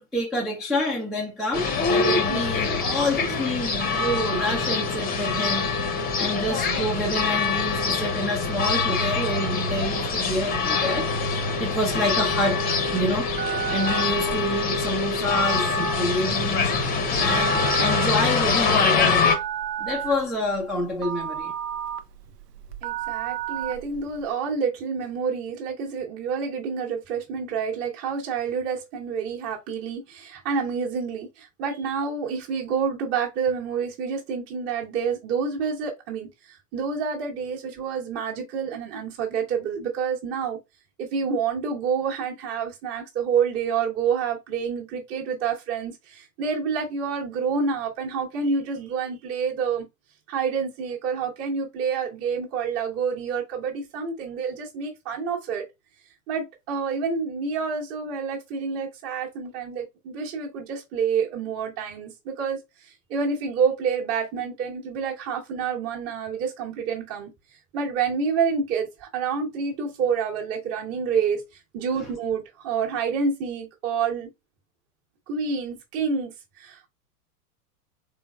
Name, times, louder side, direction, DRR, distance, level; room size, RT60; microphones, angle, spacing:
voice 1, 0.0-13.4 13.7-16.7 17.2-19.3 19.8-21.5 72.0-72.1, left 1 dB, ahead, 0.4 m, -28 dB
sound 1, 1.5-19.3, left 4 dB, 20° left, 0.8 m, -24 dB
Telephone, 12.8-24.3, right 10 dB, 85° right, 0.7 m, -33 dB
voice 2, 22.8-40.6 41.0-49.9 50.3-55.6 56.3-67.3 67.7-74.3 75.3-76.9, right 6 dB, 30° right, 1.2 m, -28 dB
3.8 x 3.7 x 2.3 m
hypercardioid pair, 110°, 47 cm